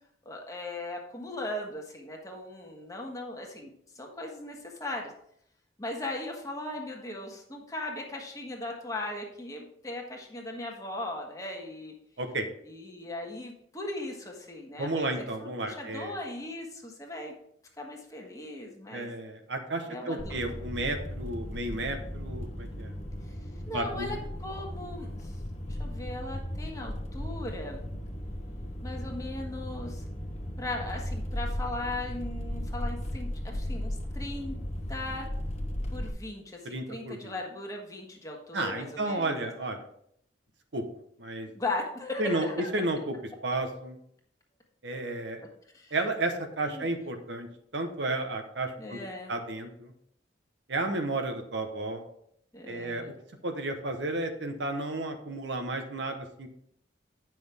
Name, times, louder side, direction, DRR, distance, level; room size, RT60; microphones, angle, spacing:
voice 1, 0.2-5.1 5.8-11.9 12.6-17.3 17.8-19.1 19.9-20.4 23.3-23.4 23.6-24.2 24.4-25.4 25.7-27.8 28.8-30.0 30.6-34.6 34.9-35.3 35.9-39.5 41.5-42.7 45.7-45.9 46.6-46.9 48.8-49.3 52.5-53.1, left 2 dB, 20° left, 0 dB, 1.4 m, -38 dB
voice 2, 12.2-12.5 14.8-16.1 18.9-23.0 23.7-24.2 36.6-37.3 38.5-39.8 40.7-40.9 41.2-41.5 42.2-43.2 43.4-44.0 44.8-45.4 45.9-49.0 49.3-49.9 50.7-52.0 52.7-53.1 53.4-56.5, right 2 dB, 75° right, 5 dB, 1.1 m, -32 dB
sound 1, 20.2-36.1, left 1 dB, 35° left, 1.0 m, -36 dB
9.3 x 6.0 x 3.5 m, 0.70 s
head